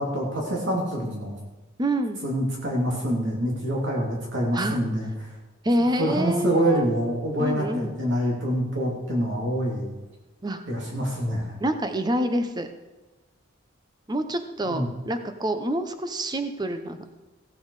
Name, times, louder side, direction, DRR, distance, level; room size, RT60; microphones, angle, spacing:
voice 1, 0.0-1.4 2.2-5.3 6.0-9.9 10.7-11.6 14.6-14.9, equal, 70° right, -3 dB, 3.1 m, -26 dB
voice 2, 1.8-2.2 4.5-4.8 5.6-6.9 7.4-7.9 10.4-10.6 11.6-12.7 14.1-17.0, right 1 dB, 20° right, 8 dB, 0.8 m, -27 dB
16.0 x 8.7 x 4.9 m, 1.2 s
head